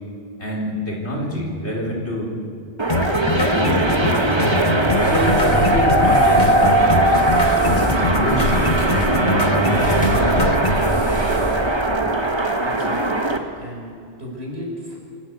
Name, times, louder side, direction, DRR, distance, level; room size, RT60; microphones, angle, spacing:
voice 1, 0.4-2.3 3.3-3.9 5.0-7.3 7.6-10.6, equal, 85° left, -2 dB, 4.7 m, -26 dB
sound 1, 2.8-13.4, right 2 dB, 25° right, 1.4 m, -19 dB
sound 2, 2.9-10.9, left 3 dB, 40° left, 1.1 m, -24 dB
sound 3, 4.9-11.7, equal, 5° left, 7.3 m, -27 dB
voice 2, 12.6-13.3 13.6-15.0, equal, 70° right, -1 dB, 5.5 m, -34 dB
26.5 x 13.0 x 8.1 m, 2.4 s
omnidirectional pair, 1.1 m